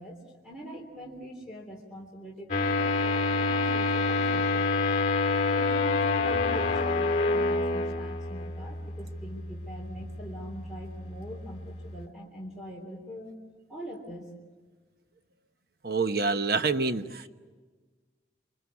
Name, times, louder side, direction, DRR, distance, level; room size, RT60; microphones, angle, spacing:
voice 1, 0.0-4.7 5.5-13.3 13.7-14.3, equal, 5° right, 0 dB, 3.3 m, -43 dB
sound 1, 2.5-12.1, left 3 dB, 40° left, 2.1 m, -28 dB
voice 2, 15.8-17.3, right 4 dB, 55° right, 9 dB, 1.1 m, -27 dB
28.5 x 24.0 x 8.4 m, 1.4 s
head